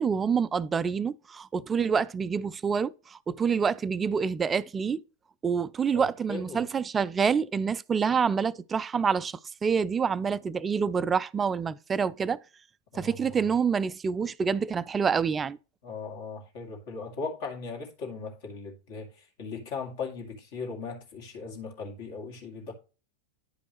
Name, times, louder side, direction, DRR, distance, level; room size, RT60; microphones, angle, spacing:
voice 1, 0.0-5.0 5.4-12.4 12.9-15.6, right 6 dB, 20° right, 0.3 m, -27 dB
voice 2, 5.9-6.6 12.9-13.3 15.8-22.7, left 4 dB, 50° left, 2.1 m, -38 dB
10.5 x 5.2 x 3.0 m
figure-of-eight pair, 90°, 0 cm